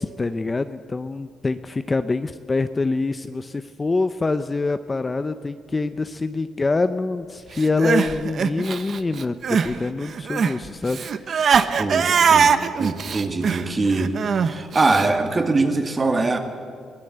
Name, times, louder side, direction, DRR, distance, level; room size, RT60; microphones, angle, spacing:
voice 1, 0.0-11.4, left 3 dB, 20° left, 10 dB, 0.6 m, -25 dB
Crying sobbing, 7.6-9.8 10.0-15.1, right 6 dB, 45° right, 1.0 m, -21 dB
voice 2, 11.8-12.5 12.8-16.4, right 3 dB, 25° right, 6 dB, 2.2 m, -22 dB
22.5 x 19.0 x 8.0 m, 2.2 s
cardioid pair, 135°, 0 cm